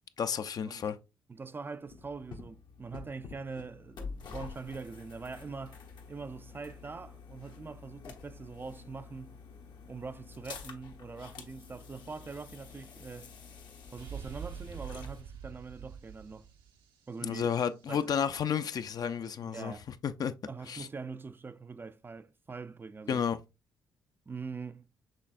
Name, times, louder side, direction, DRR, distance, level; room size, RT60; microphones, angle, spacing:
voice 1, 0.2-1.0 17.2-19.7 20.0-20.3 20.7-20.9 23.1-23.4, left 7 dB, 50° left, 0.5 m, -31 dB
voice 2, 1.3-5.8 6.1-9.4 9.9-13.3 13.9-16.5 17.1-17.5 17.9-18.0 19.4-19.9 20.5-23.2 24.3-24.9, right 4 dB, 25° right, 0.3 m, -43 dB
sound 1, 1.9-15.2, left 5 dB, 70° left, 1.0 m, -48 dB
sound 2, 14.0-17.7, right 7 dB, 80° right, 0.8 m, -45 dB
6.3 x 3.3 x 2.5 m
supercardioid pair, 65°, 8 cm